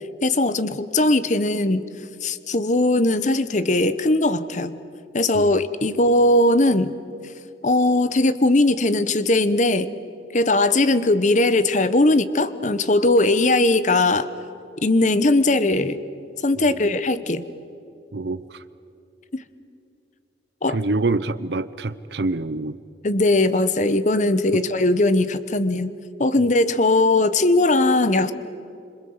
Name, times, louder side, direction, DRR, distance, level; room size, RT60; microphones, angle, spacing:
voice 1, 0.2-1.9 2.2-4.7 5.1-6.9 7.6-9.9 10.3-14.3 14.8-16.0 16.4-17.4 19.3-19.4 20.6-20.8 23.0-25.9 26.2-28.3, left 2 dB, 40° left, 13 dB, 1.0 m, -19 dB
voice 2, 16.6-16.9 18.1-18.6 20.7-22.8 24.5-24.6, right 3 dB, 65° right, 13 dB, 0.7 m, -26 dB
27.0 x 26.0 x 7.9 m, 2.7 s
head